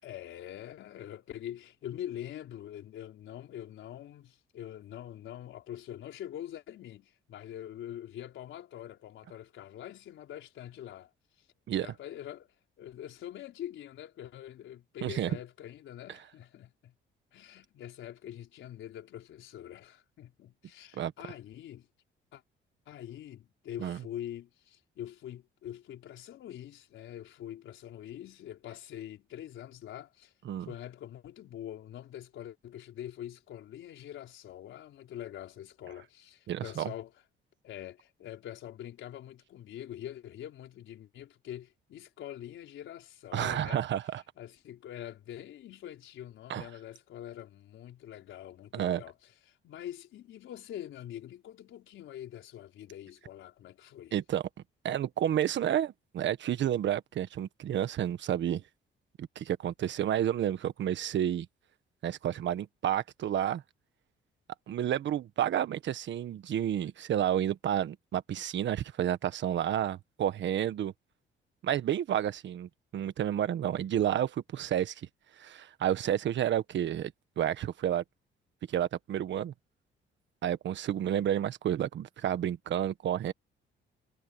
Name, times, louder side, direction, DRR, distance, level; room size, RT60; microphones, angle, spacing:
voice 1, 0.0-11.1 11.4-11.5 11.7-12.5 12.8-16.9 17.3-21.9 22.3-22.4 22.9-30.3 30.6-37.1 37.6-43.8 44.4-54.1, left 11 dB, 75° left, 4.3 m, -44 dB
voice 2, 36.5-36.9 43.3-44.2 46.5-46.7 48.7-49.0 54.1-54.4 54.8-58.6 59.2-61.5 62.0-63.6 64.7-70.9 71.6-75.1 75.4-78.0 78.7-79.5 80.4-83.3, right 10 dB, 65° right, 1.4 m, -30 dB
cardioid pair, 90°, 20 cm